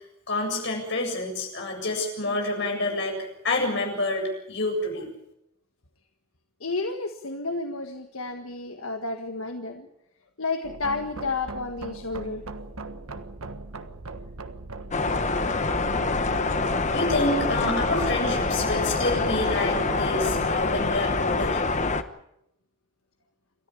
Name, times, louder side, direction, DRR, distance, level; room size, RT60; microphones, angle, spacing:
voice 1, 0.3-3.2 3.4-5.1 16.9-21.6, left 2 dB, 55° left, 2 dB, 7.8 m, -28 dB
voice 2, 6.6-9.9 10.4-12.4 17.6-17.7, left 3 dB, 75° left, 5 dB, 1.6 m, -31 dB
sound 1, 10.6-20.5, right 2 dB, 90° right, 1.5 m, -38 dB
sound 2, 14.9-22.0, left 3 dB, 35° left, 1.1 m, -25 dB
29.0 x 13.5 x 8.7 m, 0.78 s
head